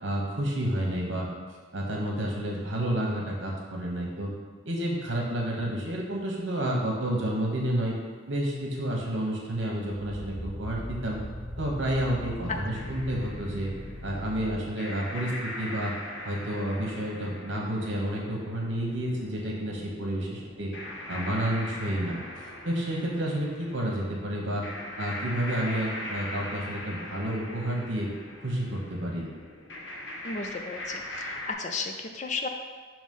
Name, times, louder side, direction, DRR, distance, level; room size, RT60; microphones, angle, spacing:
voice 1, 0.0-1.3 1.7-4.3 4.6-7.9 8.3-11.2 11.6-13.7 14.0-15.9 16.2-20.7 21.1-24.6 25.0-28.1 28.4-29.3, right 1 dB, 65° right, -2 dB, 1.2 m, -30 dB
sound 1, 9.7-14.5, equal, 10° right, 0.6 m, -39 dB
sound 2, 12.7-31.5, left 1 dB, 65° left, 0.9 m, -41 dB
voice 2, 30.2-32.5, left 4 dB, 35° left, 4 dB, 0.4 m, -34 dB
6.2 x 3.0 x 5.4 m, 1.5 s
head